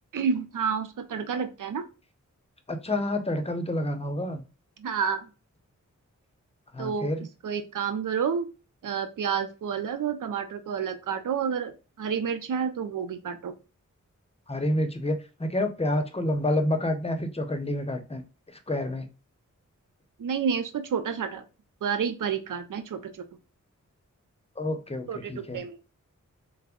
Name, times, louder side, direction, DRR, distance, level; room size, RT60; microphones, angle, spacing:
voice 1, 0.1-1.9 4.8-5.3 6.8-7.1 7.4-8.5 8.8-13.5 20.2-21.5 21.8-23.3 25.1-25.8, right 7 dB, 85° right, 9 dB, 0.5 m, -29 dB
voice 2, 2.7-4.4 6.7-7.2 14.5-18.2 18.7-19.1 24.6-25.6, left 1 dB, 20° left, 7 dB, 0.7 m, -28 dB
3.3 x 2.0 x 3.5 m, 0.31 s
cardioid pair, 50°, 31 cm